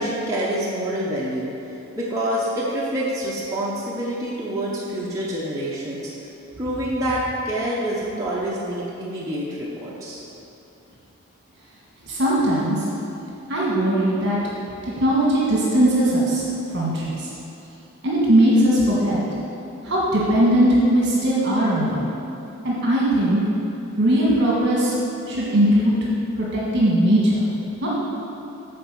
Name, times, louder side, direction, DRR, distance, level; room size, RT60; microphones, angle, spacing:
voice 1, 0.0-6.1 6.6-10.2, right 1 dB, 15° right, -7 dB, 0.8 m, -27 dB
voice 2, 12.0-12.8 13.5-14.4 14.8-16.4 16.7-17.3 18.0-19.2 19.8-22.1 22.6-23.4 24.0-24.9 25.3-25.9 26.3-27.5 27.8-27.9, right 1 dB, 50° right, -6 dB, 1.5 m, -19 dB
7.6 x 4.6 x 6.8 m, 2.9 s
head